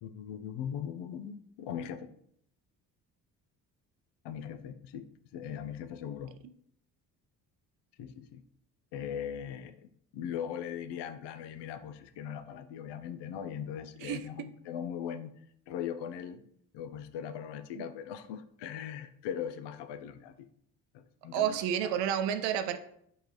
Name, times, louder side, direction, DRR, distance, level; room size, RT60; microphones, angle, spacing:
voice 1, 0.0-2.1 4.2-6.3 8.0-8.4 8.9-15.3 15.7-16.4 16.7-20.5 20.9-21.6, left 8 dB, 55° left, 10 dB, 0.5 m, -40 dB
voice 2, 21.3-22.8, right 9 dB, 60° right, 9 dB, 0.6 m, -30 dB
4.7 x 2.7 x 3.0 m, 0.69 s
hypercardioid pair, 50°, 50 cm